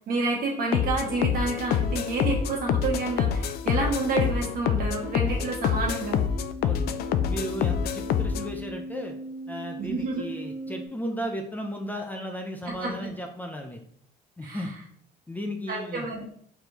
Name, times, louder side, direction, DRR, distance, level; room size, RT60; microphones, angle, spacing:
voice 1, 0.1-6.2 9.8-10.3 12.6-12.9 14.4-14.7 15.7-16.3, right 3 dB, 60° right, -1 dB, 1.4 m, -29 dB
sound 1, 0.7-8.5, left 8 dB, 70° left, 0.4 m, -26 dB
sound 2, 2.4-10.9, equal, 30° right, 1.0 m, -40 dB
voice 2, 7.2-9.1 9.5-13.8 14.4-14.7 15.3-16.1, equal, 10° left, 2 dB, 0.5 m, -35 dB
4.2 x 3.3 x 3.0 m, 0.64 s
cardioid pair, 110°, 17 cm